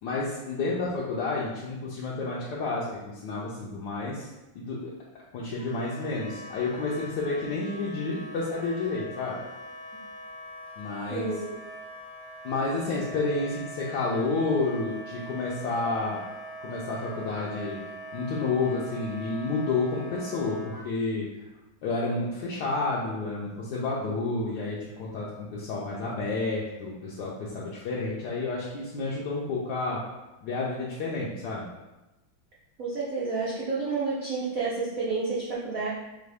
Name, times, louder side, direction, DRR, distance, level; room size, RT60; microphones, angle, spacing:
voice 1, 0.0-4.9 5.3-9.4 10.8-11.4 12.4-16.2 16.6-17.8 18.1-21.5 21.8-30.0 30.4-31.7, left 3 dB, 70° left, -6 dB, 1.1 m, -30 dB
Wind instrument woodwind instrument, 5.6-20.9, right 1 dB, 5° right, 0.5 m, -42 dB
voice 2, 11.1-11.5 32.8-35.9, right 4 dB, 80° right, -6 dB, 0.7 m, -30 dB
4.7 x 2.6 x 3.3 m, 1.0 s
omnidirectional pair, 2.3 m